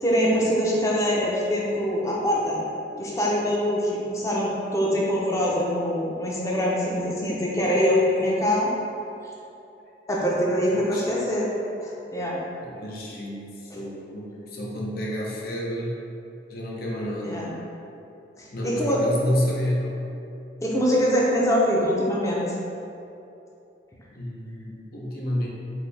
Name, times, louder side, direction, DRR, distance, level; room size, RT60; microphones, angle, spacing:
voice 1, 0.0-2.6 3.0-8.7 10.1-11.5 11.8-12.4 17.2-17.5 18.4-19.0 20.6-22.4, equal, 20° left, -4 dB, 0.6 m, -24 dB
voice 2, 10.8-11.2 12.6-16.0 16.5-17.5 18.5-19.9 24.1-25.5, left 1 dB, 55° left, -3 dB, 0.7 m, -30 dB
4.8 x 2.7 x 3.3 m, 2.7 s
head